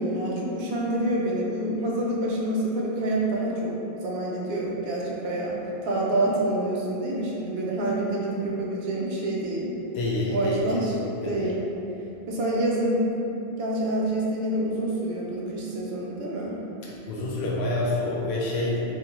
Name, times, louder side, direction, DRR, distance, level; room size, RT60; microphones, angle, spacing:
voice 1, 0.0-3.7 4.0-5.6 5.8-9.7 10.3-10.9 11.3-11.6 12.3-13.1 13.5-16.5, right 1 dB, 75° right, -4 dB, 0.8 m, -27 dB
voice 2, 9.9-11.5 16.8-19.0, left 2 dB, 90° left, -4 dB, 0.9 m, -28 dB
2.9 x 2.1 x 2.9 m, 2.9 s
omnidirectional pair, 1.0 m